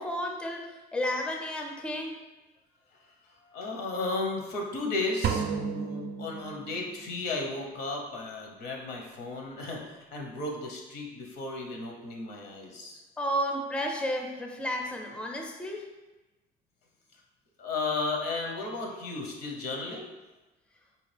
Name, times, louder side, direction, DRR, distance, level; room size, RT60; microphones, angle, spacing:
voice 1, 0.0-2.1 13.2-15.8, equal, 5° left, 2 dB, 0.4 m, -32 dB
voice 2, 3.5-13.0 17.6-20.1, left 3 dB, 75° left, 1 dB, 0.8 m, -34 dB
sound 1, 5.2-7.0, right 6 dB, 60° right, 0.4 m, -32 dB
4.2 x 2.4 x 3.3 m, 1.1 s
cardioid pair, 110°, 17 cm